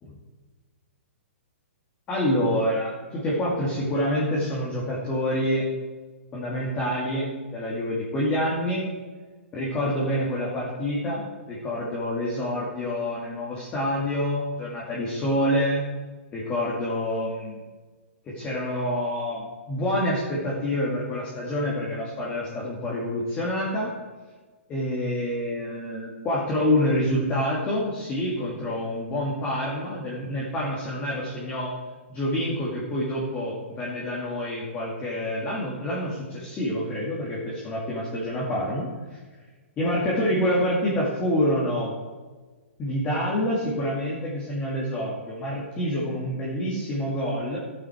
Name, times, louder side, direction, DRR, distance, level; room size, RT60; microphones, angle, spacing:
voice 1, 2.1-5.6 6.3-8.9 9.5-15.9 16.3-17.6 18.2-23.9 24.7-31.7 32.1-39.2 39.8-41.9 42.8-47.6, equal, 20° left, -6 dB, 2.5 m, -27 dB
13.0 x 8.6 x 4.7 m, 1.4 s
hypercardioid pair, 140°, 7 cm